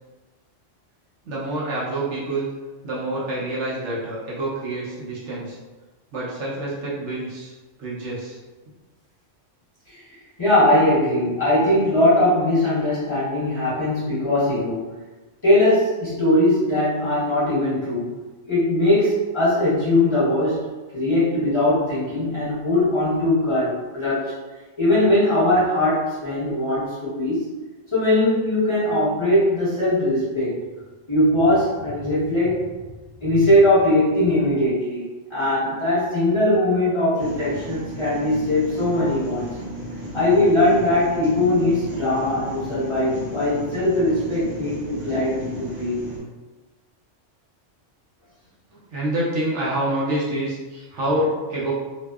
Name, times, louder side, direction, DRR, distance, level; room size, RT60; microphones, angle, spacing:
voice 1, 1.3-2.5 2.8-5.6 6.1-7.5 7.8-8.4 48.7-51.7, right 1 dB, 70° right, -7 dB, 0.9 m, -27 dB
voice 2, 10.4-14.9 15.4-18.1 18.5-20.6 20.9-24.3 24.8-27.5 27.9-30.6 31.1-32.7 33.2-35.0 35.3-39.5 40.1-46.0, left 1 dB, 25° left, -12 dB, 0.9 m, -20 dB
sound 1, 37.2-46.2, equal, 50° right, 0.8 m, -35 dB
2.7 x 2.0 x 2.2 m, 1.2 s
omnidirectional pair, 1.3 m